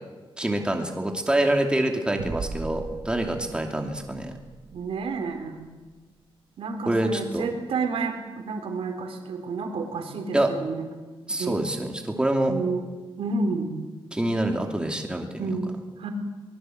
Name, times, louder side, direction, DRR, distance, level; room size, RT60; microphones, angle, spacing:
voice 1, 0.4-4.3 6.9-7.5 10.3-10.5 11.3-12.6 14.1-15.6, right 1 dB, 10° right, 3 dB, 2.7 m, -26 dB
sound 1, 2.2-7.0, right 4 dB, 50° right, 2.2 m, -40 dB
voice 2, 4.7-5.7 6.6-11.0 11.4-11.6 12.5-12.9 13.2-13.8 15.4-16.1, right 4 dB, 85° right, 5 dB, 4.0 m, -30 dB
23.0 x 21.0 x 7.9 m, 1.3 s
wide cardioid pair, 170°, 10 cm